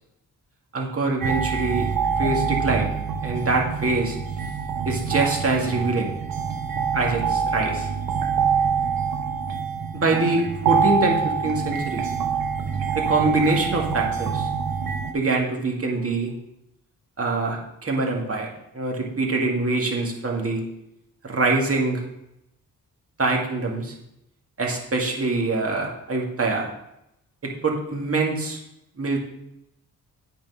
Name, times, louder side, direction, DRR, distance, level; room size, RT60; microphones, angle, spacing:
voice 1, 0.7-1.9 2.2-2.9 3.2-4.2 4.8-6.1 6.9-7.9 9.9-12.0 12.9-14.5 15.1-16.3 17.2-18.5 18.7-20.6 21.2-22.0 23.2-23.9 24.6-26.7 27.4-28.6 29.0-29.2, right 3 dB, 40° right, -1 dB, 2.0 m, -24 dB
sound 1, 1.2-15.1, right 6 dB, 70° right, 1.0 m, -25 dB
8.6 x 4.2 x 5.4 m, 0.82 s
cardioid pair, 70°, 36 cm